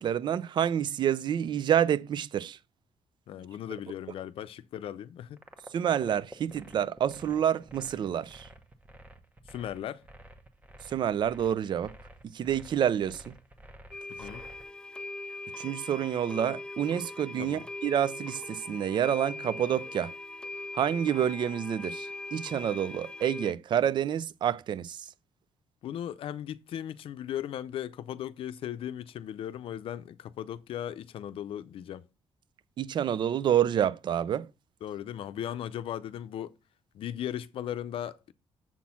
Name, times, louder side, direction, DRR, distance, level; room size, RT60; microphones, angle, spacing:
voice 1, 0.0-2.6 5.7-8.5 10.9-11.9 12.3-13.4 15.6-20.1 20.7-25.1 32.8-34.5, right 9 dB, 50° right, 0.5 m, -28 dB
voice 2, 3.3-5.4 9.5-10.0 14.1-14.4 17.4-17.6 25.8-32.1 34.8-36.5 36.9-38.3, left 10 dB, 65° left, 0.6 m, -37 dB
sound 1, 5.4-14.7, right 1 dB, 15° right, 1.0 m, -50 dB
sound 2, 13.9-23.5, left 2 dB, 10° left, 0.3 m, -41 dB
7.2 x 4.2 x 5.7 m
cardioid pair, 120°, 10 cm